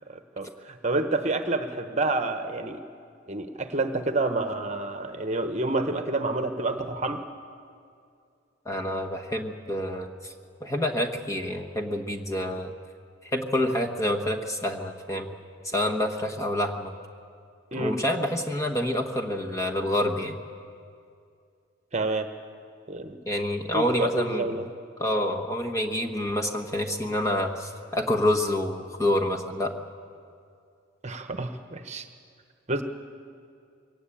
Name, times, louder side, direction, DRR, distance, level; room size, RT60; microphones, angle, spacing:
voice 1, 0.1-2.8 3.3-7.2 17.7-18.0 21.9-22.3 22.9-23.2 23.7-24.6 31.0-32.1 32.7-32.8, right 2 dB, 35° right, 7 dB, 1.1 m, -28 dB
voice 2, 8.6-10.3 10.6-12.7 13.3-15.3 15.6-16.9 17.7-20.4 23.3-24.6 25.0-29.7, left 1 dB, 15° left, 3 dB, 1.2 m, -27 dB
22.5 x 18.0 x 8.6 m, 2.4 s
head